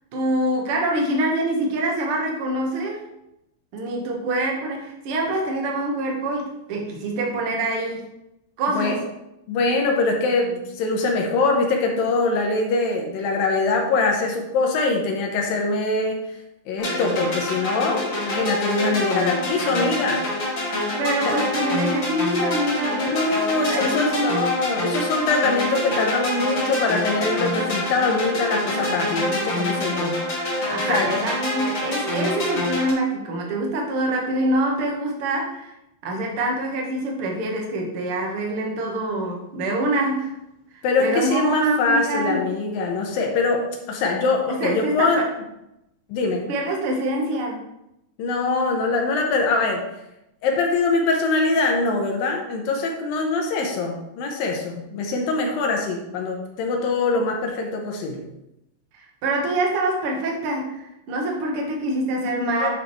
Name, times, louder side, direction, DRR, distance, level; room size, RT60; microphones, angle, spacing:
voice 1, 0.1-3.0 3.7-8.0 8.6-9.0 21.0-23.1 23.7-24.4 30.7-35.7 36.0-40.3 40.7-42.4 44.5-45.2 46.5-47.6 58.9-62.7, right 1 dB, 75° right, 0 dB, 1.2 m, -25 dB
voice 2, 9.5-16.2 16.7-20.2 21.3-21.4 22.9-30.2 30.9-31.1 40.8-45.2 46.1-46.4 48.2-49.8 50.4-58.3 62.6-62.7, left 3 dB, 70° left, 2 dB, 2.6 m, -23 dB
sound 1, 16.8-32.9, left 1 dB, 35° left, 2.3 m, -26 dB
8.8 x 6.6 x 3.2 m, 0.86 s
omnidirectional pair, 4.7 m